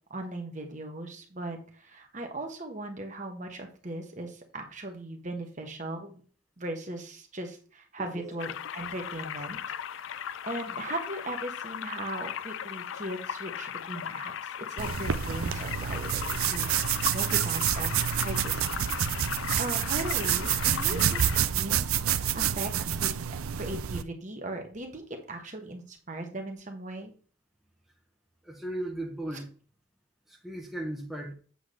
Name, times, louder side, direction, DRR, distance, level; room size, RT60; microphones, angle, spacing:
voice 1, 0.1-6.2 6.6-23.3 23.6-27.1, right 1 dB, 35° right, 3 dB, 1.3 m, -38 dB
voice 2, 8.0-8.4 28.4-29.5 30.3-31.3, right 1 dB, ahead, -1 dB, 1.1 m, -37 dB
sound 1, 8.4-21.4, left 9 dB, 65° left, 0.4 m, -37 dB
sound 2, 14.8-24.0, right 9 dB, 90° right, 0.5 m, -28 dB
8.1 x 3.7 x 6.5 m, 0.42 s
head